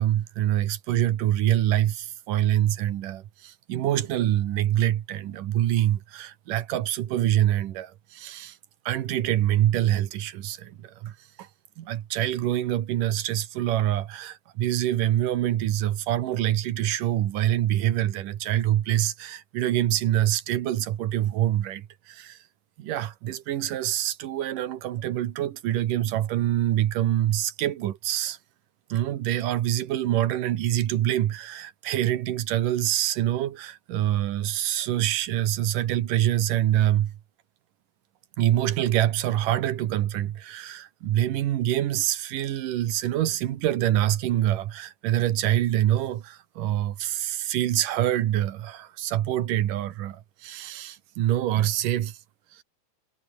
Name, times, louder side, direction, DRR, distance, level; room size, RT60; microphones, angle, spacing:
voice 1, 0.0-8.6 8.9-11.5 11.8-22.4 22.8-28.4 28.9-37.2 38.4-52.2 52.5-52.6, right 12 dB, 80° right, 2.9 m, -25 dB
omnidirectional pair, 3.8 m